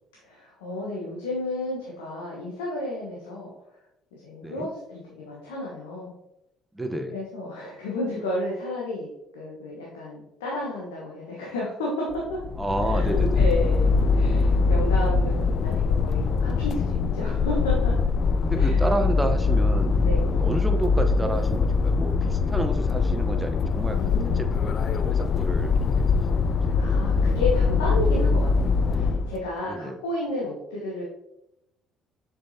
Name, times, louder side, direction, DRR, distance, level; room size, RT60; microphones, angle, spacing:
voice 1, 0.2-3.5 4.1-6.1 7.1-12.4 12.8-17.9 18.5-18.8 20.0-20.2 23.9-24.5 26.7-31.0, left 2 dB, 80° left, -4 dB, 1.1 m, -32 dB
voice 2, 6.7-7.2 12.6-13.5 18.4-24.0 24.2-27.0 27.3-27.4 29.6-30.0, right 1 dB, 15° right, 6 dB, 0.9 m, -31 dB
sound 1, 12.1-29.4, left 4 dB, 50° left, 0.4 m, -22 dB
6.7 x 5.3 x 2.8 m, 0.85 s
hypercardioid pair, 55°, 0 cm